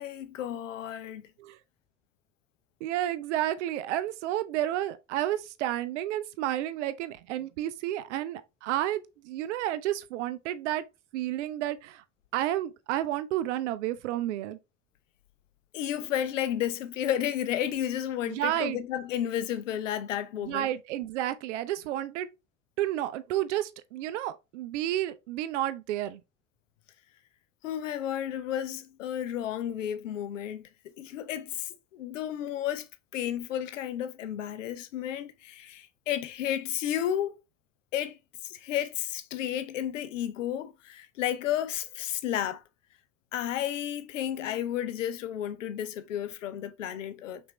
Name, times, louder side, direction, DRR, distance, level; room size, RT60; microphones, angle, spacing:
voice 1, 0.0-1.2 15.7-20.7 27.6-32.9 33.1-37.4 37.9-38.2 38.4-42.6 43.3-47.4, left 11 dB, 75° left, 0.6 m, -32 dB
voice 2, 2.8-10.8 11.1-12.0 12.3-14.6 18.3-18.8 20.4-22.3 22.8-26.2, right 13 dB, 65° right, 0.5 m, -31 dB
5.7 x 2.6 x 3.1 m
figure-of-eight pair, 55°, 38 cm